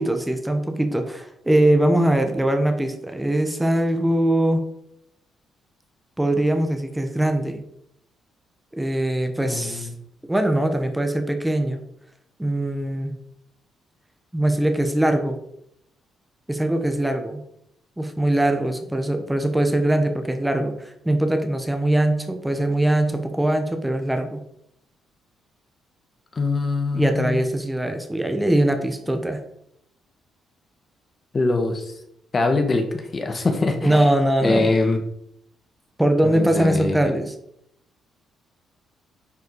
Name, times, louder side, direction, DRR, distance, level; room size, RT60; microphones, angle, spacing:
voice 1, 0.0-4.6 6.2-7.6 8.8-9.9 10.3-11.8 12.4-13.1 14.3-15.4 16.5-17.4 18.0-24.4 26.9-29.4 33.8-34.7 36.0-37.3, right 1 dB, 10° right, 5 dB, 1.3 m, -21 dB
voice 2, 9.4-9.9 26.3-27.4 31.3-31.9 32.3-34.0 34.4-35.0 36.2-37.0, left 3 dB, 35° left, 6 dB, 1.5 m, -23 dB
9.8 x 4.7 x 4.8 m, 0.76 s
cardioid pair, 90°, 0 cm